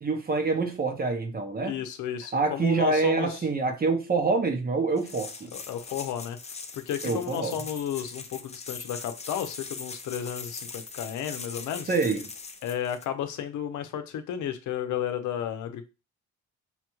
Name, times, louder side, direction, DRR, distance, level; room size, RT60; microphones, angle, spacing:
voice 1, 0.0-1.8 2.3-5.5 7.0-7.6 11.9-12.3, right 3 dB, 30° right, 0.9 m, -26 dB
voice 2, 1.6-3.4 5.5-6.4 6.7-11.9 12.6-15.9, left 9 dB, 80° left, 0.7 m, -33 dB
sound 1, 5.0-13.1, left 4 dB, 20° left, 0.6 m, -41 dB
5.7 x 2.3 x 3.0 m
cardioid pair, 90°, 30 cm